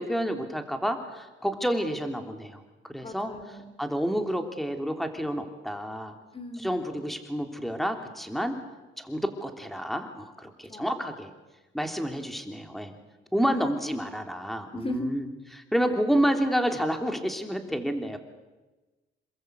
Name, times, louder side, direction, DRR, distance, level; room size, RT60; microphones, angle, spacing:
voice 1, 0.0-2.6 2.9-3.3 3.8-6.1 6.6-8.5 9.0-11.3 11.7-12.9 13.3-15.3 15.5-18.2, equal, ahead, 5 dB, 3.3 m, -29 dB
voice 2, 3.0-3.8 6.3-6.8 10.7-10.9 13.4-13.6 14.7-15.1 15.8-16.0, left 1 dB, 30° left, 9 dB, 2.8 m, -37 dB
27.5 x 22.5 x 8.3 m, 1.2 s
cardioid pair, 90°, 20 cm